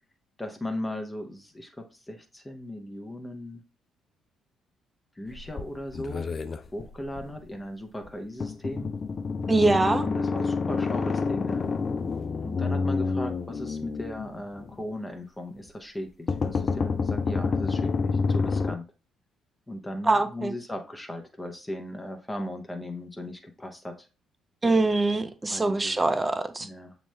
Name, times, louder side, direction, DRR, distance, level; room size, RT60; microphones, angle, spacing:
voice 1, 0.4-3.6 5.2-6.3 6.7-8.9 10.0-11.7 12.4-18.8 19.7-24.1 25.5-26.1 26.6-27.0, left 1 dB, 15° left, 0.8 m, -37 dB
sound 1, 5.3-7.3 8.1-8.2 8.4-14.8 16.3-18.8, left 4 dB, 40° left, 0.4 m, -28 dB
voice 2, 9.5-10.1 20.0-20.5 24.6-26.7, right 2 dB, 20° right, 0.6 m, -23 dB
7.1 x 3.0 x 2.2 m
figure-of-eight pair, 45°, 0 cm